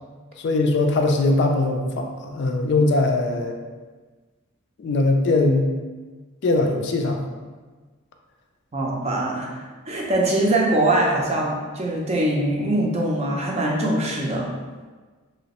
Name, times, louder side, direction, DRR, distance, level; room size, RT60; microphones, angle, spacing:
voice 1, 0.4-3.6 4.8-5.7 6.4-7.2, left 2 dB, 55° left, 3 dB, 0.3 m, -21 dB
voice 2, 8.7-14.6, right 1 dB, 30° right, -2 dB, 0.5 m, -23 dB
3.0 x 2.9 x 2.9 m, 1.4 s
head